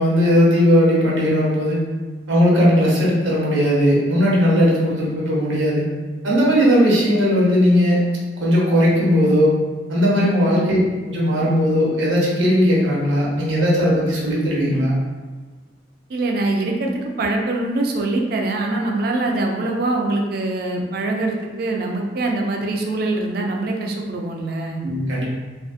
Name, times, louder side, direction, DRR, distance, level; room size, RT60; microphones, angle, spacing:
voice 1, 0.0-1.8 2.3-5.8 6.2-8.0 8.4-9.5 9.9-10.8 11.1-15.0 24.8-25.2, equal, 85° right, -5 dB, 0.8 m, -17 dB
voice 2, 10.4-10.7 16.1-24.8, right 2 dB, 55° right, 1 dB, 0.4 m, -23 dB
2.5 x 2.4 x 2.4 m, 1.3 s
head